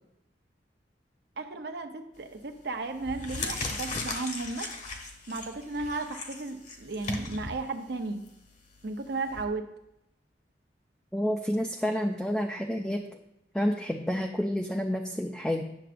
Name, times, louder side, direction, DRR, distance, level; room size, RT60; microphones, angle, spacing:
voice 1, 1.4-4.7 5.3-8.2 8.8-9.6, right 3 dB, 65° right, 6 dB, 0.7 m, -34 dB
sound 1, 2.2-2.5 2.9-9.4, left 3 dB, 45° left, 1.0 m, -38 dB
voice 2, 11.1-13.1 13.5-15.6, equal, 5° left, 2 dB, 0.4 m, -29 dB
9.8 x 6.8 x 2.5 m, 0.84 s
head